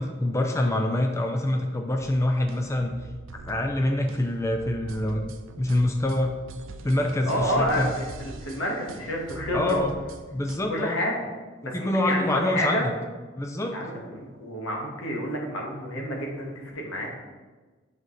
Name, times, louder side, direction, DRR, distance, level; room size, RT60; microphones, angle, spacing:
voice 1, 0.0-2.9 3.4-6.4 6.8-7.9 9.5-9.9 10.3-11.0 11.7-12.9 13.4-13.8, left 1 dB, 15° left, 3 dB, 0.4 m, -25 dB
sound 1, 2.5-10.6, right 3 dB, 70° right, 0.4 m, -43 dB
voice 2, 7.3-9.8 10.7-11.3 11.6-12.9 13.7-17.1, equal, 75° left, -1 dB, 1.5 m, -29 dB
7.9 x 5.1 x 3.2 m, 1.3 s
head